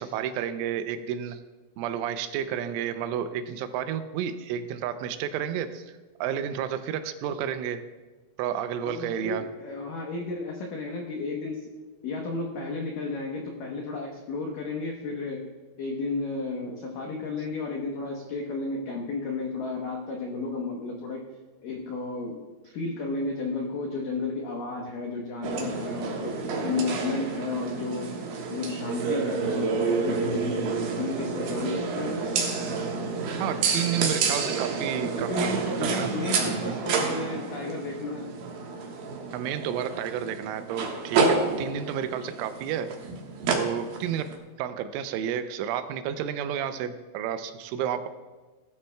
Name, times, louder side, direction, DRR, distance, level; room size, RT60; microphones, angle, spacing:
voice 1, 0.0-1.4 1.8-5.8 6.2-7.8 8.4-9.5 33.4-36.1 36.4-36.8 39.3-42.9 43.5-48.1, right 9 dB, 85° right, 10 dB, 3.2 m, -31 dB
voice 2, 8.9-11.7 12.0-15.5 15.8-21.2 21.6-28.2 28.5-32.2 35.3-38.3, left 3 dB, 85° left, 0 dB, 1.9 m, -33 dB
sound 1, 25.4-44.3, right 4 dB, 65° right, 2.7 m, -29 dB
19.0 x 13.0 x 2.3 m, 1.3 s
omnidirectional pair, 5.6 m